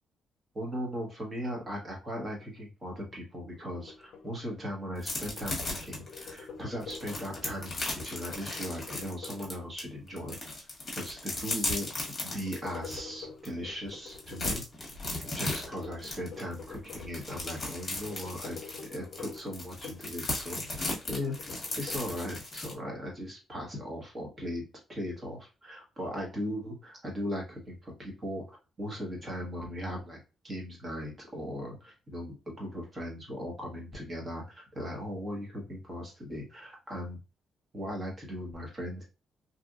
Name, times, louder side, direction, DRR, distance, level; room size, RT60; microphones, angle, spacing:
voice 1, 0.5-10.4 11.0-14.6 15.3-21.3 21.8-24.6 24.9-28.4 28.8-30.2 30.4-37.2 37.7-39.0, equal, 25° right, -1 dB, 1.1 m, -38 dB
sound 1, 3.5-5.1 5.4-10.2 12.0-14.6 15.4-17.4 17.8-20.2 20.6-22.0, left 5 dB, 60° left, 0.5 m, -48 dB
sound 2, 5.0-9.8 10.2-13.0 13.5-13.6 13.9-22.7, left 2 dB, 25° left, 1.2 m, -36 dB
2.8 x 2.5 x 2.4 m, 0.32 s
cardioid pair, 165°, 0 cm